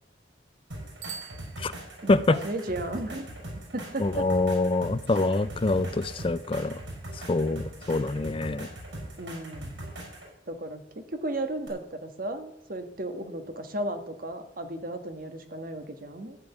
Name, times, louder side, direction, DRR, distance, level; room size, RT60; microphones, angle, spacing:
sound 1, 0.7-10.3 11.7-11.8, right 1 dB, 75° right, 6.4 m, -41 dB
Bicycle bell, 1.0-2.3, right 7 dB, 90° right, 2.0 m, -44 dB
voice 1, 2.0-3.3 3.7-4.3 9.2-9.9 10.5-16.4, right 1 dB, 50° right, 7 dB, 1.6 m, -35 dB
voice 2, 4.0-6.8 7.3-8.7, left 2 dB, 30° left, 15 dB, 0.4 m, -25 dB
14.5 x 5.3 x 9.1 m, 0.82 s
head